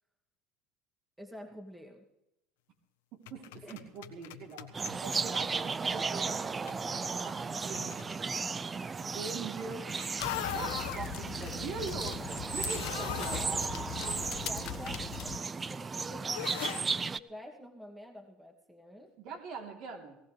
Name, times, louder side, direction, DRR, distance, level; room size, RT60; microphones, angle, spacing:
voice 1, 1.2-2.1 3.6-3.8 8.7-8.8 14.4-19.1, equal, 10° right, 2 dB, 2.4 m, -48 dB
voice 2, 3.1-8.0 9.0-10.0 10.5-14.2 19.2-20.2, right 4 dB, 60° right, 3 dB, 3.2 m, -43 dB
sound 1, 3.3-5.0 6.7-6.8 7.7-8.1 9.9-11.0 12.4-14.2 14.6-14.7 16.3-16.8, left 12 dB, 85° left, 1.3 m, -40 dB
sound 2, 4.7-17.2, right 4 dB, 25° right, 0.5 m, -35 dB
sound 3, 10.2-15.4, left 17 dB, 65° left, 0.4 m, -41 dB
19.5 x 17.5 x 3.3 m, 0.89 s
supercardioid pair, 90°, 0 cm